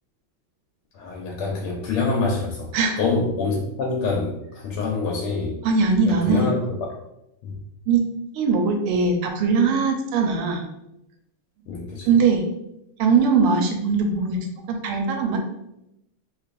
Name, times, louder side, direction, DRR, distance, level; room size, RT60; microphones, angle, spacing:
voice 1, 0.9-2.7 3.0-5.6 6.0-7.0 7.4-7.5 11.7-12.1, left 3 dB, 85° left, 0 dB, 1.5 m, -26 dB
voice 2, 5.6-6.5 7.9-8.0 8.3-10.6 12.1-12.4 13.0-14.4 14.7-15.4, right 4 dB, 85° right, 4 dB, 1.5 m, -20 dB
3.5 x 3.2 x 2.4 m, 0.84 s
omnidirectional pair, 2.4 m